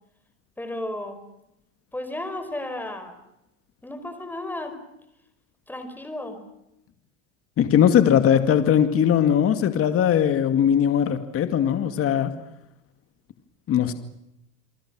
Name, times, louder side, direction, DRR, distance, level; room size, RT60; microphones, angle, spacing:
voice 1, 0.6-1.2 1.9-3.1 3.8-4.8 5.7-6.4, left 1 dB, 5° left, 8 dB, 5.1 m, -33 dB
voice 2, 7.6-12.3 13.7-13.9, left 9 dB, 35° left, 9 dB, 2.3 m, -20 dB
28.0 x 23.5 x 6.3 m, 0.86 s
supercardioid pair, 125°, 38 cm